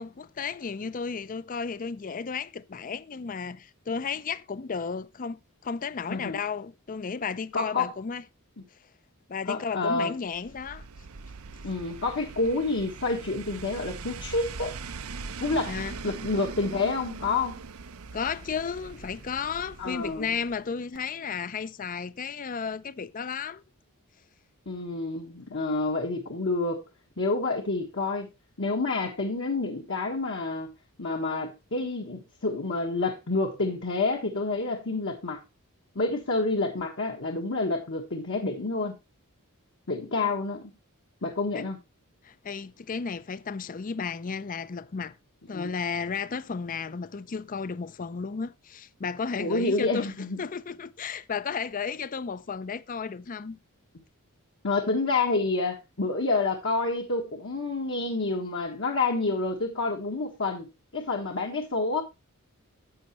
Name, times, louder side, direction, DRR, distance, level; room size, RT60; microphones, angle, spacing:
voice 1, 0.0-8.2 9.3-10.8 15.7-16.0 18.1-23.6 41.5-41.7 42.2-45.2 45.5-53.6, left 5 dB, 40° left, 0.5 m, -33 dB
voice 2, 7.5-7.9 9.5-10.1 11.6-14.7 15.4-15.8 16.0-17.6 19.8-20.3 24.7-26.8 27.2-28.3 28.6-30.7 31.0-35.4 35.9-38.9 39.9-40.7 41.2-41.8 45.5-45.7 49.4-50.4 54.6-60.7 60.9-62.0, left 3 dB, 60° left, 1.3 m, -28 dB
sound 1, 10.3-20.7 20.9-21.0, right 4 dB, 75° right, 0.7 m, -41 dB
11.0 x 7.8 x 3.0 m
head